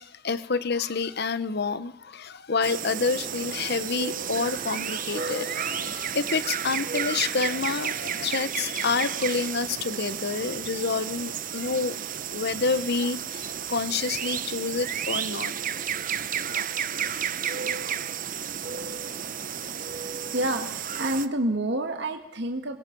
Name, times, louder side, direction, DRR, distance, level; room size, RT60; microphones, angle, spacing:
voice 1, 0.0-11.9 12.3-15.6, left 4 dB, 50° left, 0.9 m, -28 dB
sound 1, 2.6-21.3, right 8 dB, 40° right, 0.8 m, -32 dB
voice 2, 20.0-22.8, right 1 dB, 60° right, 1.7 m, -29 dB
27.0 x 22.0 x 5.3 m
head